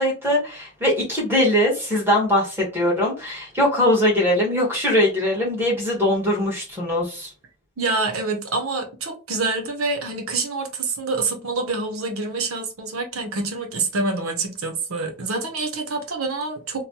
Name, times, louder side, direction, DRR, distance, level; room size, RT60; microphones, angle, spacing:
voice 1, 0.0-7.3, left 1 dB, 10° right, 1.2 m, -21 dB
voice 2, 7.8-16.8, right 3 dB, 85° right, 0.8 m, -26 dB
3.1 x 2.1 x 2.9 m
head